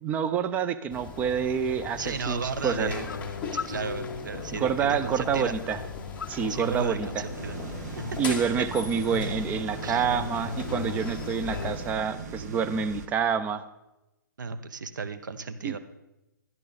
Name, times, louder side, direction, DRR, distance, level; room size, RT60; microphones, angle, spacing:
voice 1, 0.0-2.9 4.5-5.8 6.3-7.2 8.2-13.6 15.6-15.8, right 7 dB, 15° right, 11 dB, 0.4 m, -28 dB
sound 1, 0.9-11.9, left 4 dB, 10° left, 1.1 m, -40 dB
voice 2, 2.0-3.1 3.6-5.5 6.5-7.6 7.9-8.0 9.8-10.0 14.4-15.8, right 5 dB, 70° right, 10 dB, 0.8 m, -34 dB
sound 2, 2.7-11.7, left 5 dB, 75° left, 0.5 m, -38 dB
sound 3, 7.3-13.1, right 4 dB, 55° right, 1.3 m, -39 dB
11.0 x 10.5 x 4.1 m, 0.96 s
hypercardioid pair, 135°, 11 cm